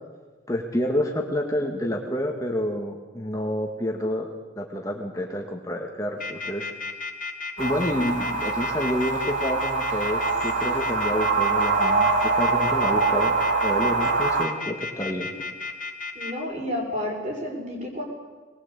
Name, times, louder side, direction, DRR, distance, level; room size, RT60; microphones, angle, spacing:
voice 1, 0.5-4.3 4.6-6.7 7.6-13.4 13.6-15.3, equal, 20° left, 1 dB, 2.0 m, -28 dB
sound 1, 6.2-16.3, left 4 dB, 45° left, 1.8 m, -33 dB
sound 2, 7.6-14.5, right 4 dB, 80° right, 2.7 m, -24 dB
voice 2, 16.1-18.0, left 1 dB, 40° right, 0 dB, 6.1 m, -30 dB
20.5 x 20.5 x 8.5 m, 1.3 s
head